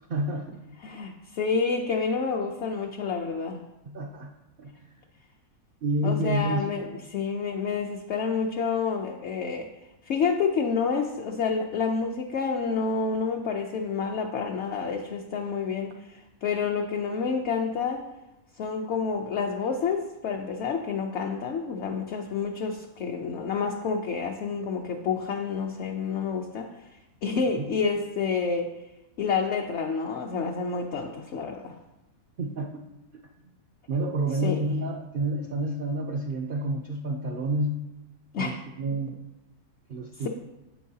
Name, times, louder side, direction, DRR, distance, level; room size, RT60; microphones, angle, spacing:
voice 1, 0.1-0.6 3.8-4.3 4.6-4.9 5.8-6.8 27.5-27.7 32.4-32.7 33.9-37.8 38.4-39.1 39.9-40.3, right 1 dB, 75° right, 4 dB, 0.5 m, -29 dB
voice 2, 0.8-3.6 6.0-9.7 10.0-18.0 18.6-26.7 27.2-28.7 29.2-31.8 34.4-34.6 38.3-38.6, left 5 dB, 60° left, 2 dB, 0.8 m, -29 dB
9.2 x 7.9 x 2.8 m, 0.98 s
omnidirectional pair, 1.6 m